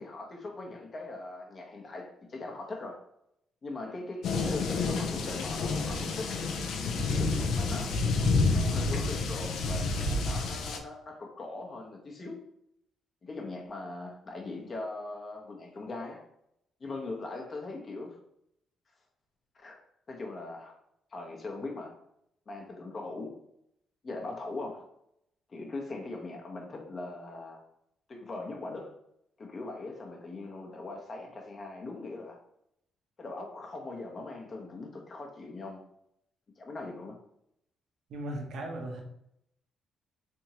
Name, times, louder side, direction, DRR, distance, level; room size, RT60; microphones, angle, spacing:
voice 1, 0.0-3.0 3.6-6.4 6.7-8.0 8.5-12.4 13.2-16.2 16.8-18.2 19.5-19.8 20.1-20.8 21.1-22.0 22.5-23.3 24.0-24.9 25.5-27.6 28.1-29.0 29.4-32.4 33.2-35.8 36.6-37.2, left 2 dB, 40° left, 1 dB, 0.8 m, -40 dB
sound 1, 4.2-10.8, left 3 dB, 70° left, 0.4 m, -29 dB
voice 2, 38.1-39.0, right 1 dB, 70° right, 2 dB, 0.8 m, -37 dB
3.4 x 2.9 x 2.9 m, 0.75 s
cardioid pair, 90°, 0 cm